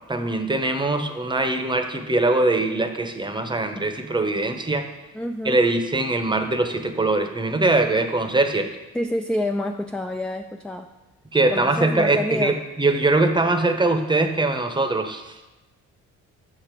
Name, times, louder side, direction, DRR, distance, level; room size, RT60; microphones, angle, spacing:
voice 1, 0.1-4.9 5.4-8.7 11.3-15.4, right 2 dB, 15° right, 7 dB, 0.8 m, -22 dB
voice 2, 5.1-5.6 8.9-10.9 11.5-12.6, left 1 dB, 5° left, 4 dB, 0.3 m, -28 dB
6.7 x 6.5 x 4.5 m, 1.0 s
cardioid pair, 90°, 30 cm